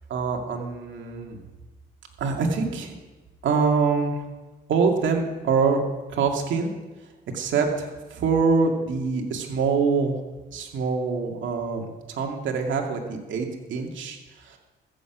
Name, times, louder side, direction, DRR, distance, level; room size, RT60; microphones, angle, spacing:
voice 1, 0.1-1.4 2.2-2.9 3.4-4.2 4.7-5.8 6.1-6.7 7.3-10.2 10.5-14.6, right 5 dB, 70° right, 2 dB, 2.3 m, -25 dB
14.0 x 6.7 x 8.1 m, 1.2 s
cardioid pair, 90°, 20 cm